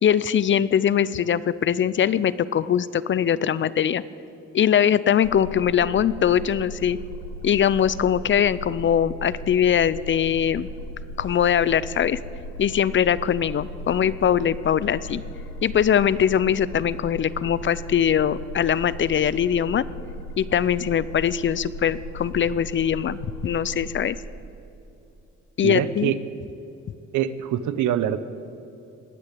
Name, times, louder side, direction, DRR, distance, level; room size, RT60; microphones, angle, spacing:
voice 1, 0.0-4.0 4.5-7.0 7.4-10.7 11.2-12.2 12.6-15.2 15.6-19.8 20.4-24.2 25.6-26.1, left 9 dB, 40° left, 18 dB, 0.5 m, -22 dB
sound 1, 5.2-24.1, equal, 90° left, 1.4 m, -37 dB
voice 2, 25.6-26.2 27.1-28.2, right 11 dB, 80° right, 14 dB, 0.7 m, -24 dB
19.5 x 6.7 x 8.5 m, 2.7 s
cardioid pair, 90°, 30 cm